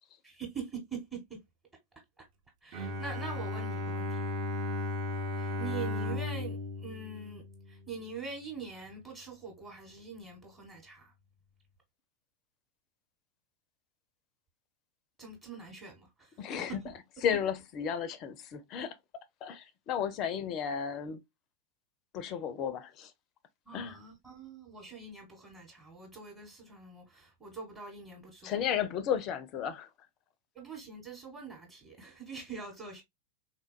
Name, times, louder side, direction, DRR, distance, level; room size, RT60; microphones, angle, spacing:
voice 1, 0.2-1.4 2.2-2.3 2.6-4.2 5.4-11.1 15.2-17.0 23.7-28.5 30.5-33.0, right 5 dB, 20° right, 1.0 m, -44 dB
Bowed string instrument, 2.7-8.0, left 2 dB, 45° right, 0.6 m, -35 dB
voice 2, 16.4-16.8 17.2-19.0 19.4-21.2 22.1-23.1 23.7-24.0 28.4-29.9, left 8 dB, 35° left, 0.4 m, -33 dB
3.5 x 2.2 x 2.2 m
figure-of-eight pair, 90°, 0 cm